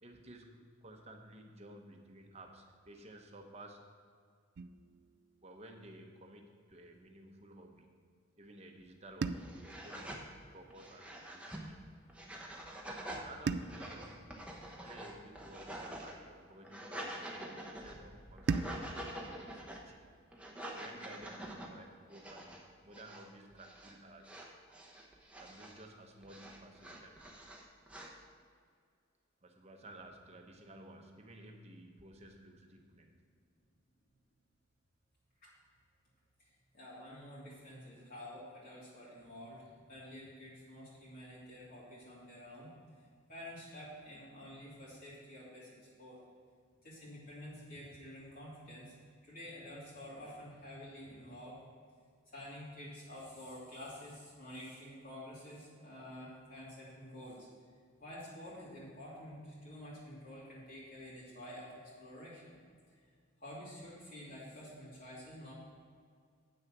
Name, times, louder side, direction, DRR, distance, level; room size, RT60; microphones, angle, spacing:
voice 1, 0.0-3.8 5.4-7.9 8.4-11.8 13.2-14.3 14.8-19.2 19.5-20.0 20.7-24.3 25.4-27.1 29.4-33.1, right 1 dB, 30° right, 2 dB, 1.0 m, -54 dB
sound 1, 4.6-6.8 9.2-11.5 13.5-15.9 18.5-21.0, right 4 dB, 55° right, 0.3 m, -43 dB
sound 2, 8.8-8.9 9.3-10.2 10.7-11.6 12.1-13.3 13.6-16.1 16.5-18.0 18.4-19.8 20.3-21.7 22.1-22.6 22.9-23.3 23.5-23.9 24.2-25.8 26.2-28.1, right 1 dB, 5° right, 0.9 m, -46 dB
sound 3, 17.7-20.7, equal, 15° left, 1.8 m, -62 dB
voice 2, 36.4-42.7 43.3-45.7 46.0-46.2 46.8-49.0 49.2-51.6 52.3-57.5 58.0-62.6 63.4-65.5, left 1 dB, 45° left, -8 dB, 2.5 m, -49 dB
8.3 x 6.4 x 6.0 m, 2.1 s
head